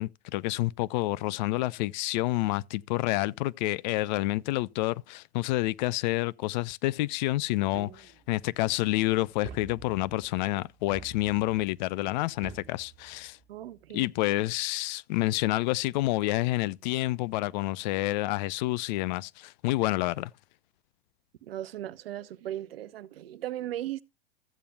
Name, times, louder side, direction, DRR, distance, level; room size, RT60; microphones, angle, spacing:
voice 1, 0.0-13.4 13.9-20.3, left 18 dB, 50° left, 0.4 m, -28 dB
sound 1, 7.7-8.4 9.4-10.3 10.9-11.7 12.4-13.4, right 7 dB, 35° right, 1.9 m, -47 dB
voice 2, 13.5-14.1 21.4-24.0, right 13 dB, 70° right, 0.8 m, -37 dB
15.0 x 8.4 x 2.2 m
hypercardioid pair, 100°, 30 cm